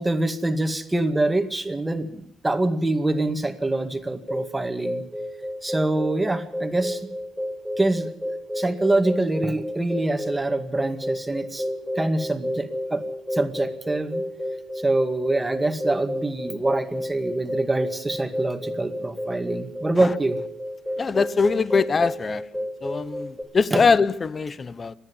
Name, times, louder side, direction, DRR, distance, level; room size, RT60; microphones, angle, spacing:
voice 1, 0.0-5.0 5.6-7.0 7.8-11.7 12.0-13.0 13.3-14.2 14.8-20.4 23.7-23.8, right 2 dB, 15° right, 2.1 m, -25 dB
sound 1, 4.3-23.4, equal, 5° left, 5.4 m, -32 dB
voice 2, 21.0-22.4 22.8-24.9, left 4 dB, 35° left, 0.9 m, -22 dB
27.0 x 10.5 x 9.9 m
cardioid pair, 105°, 0 cm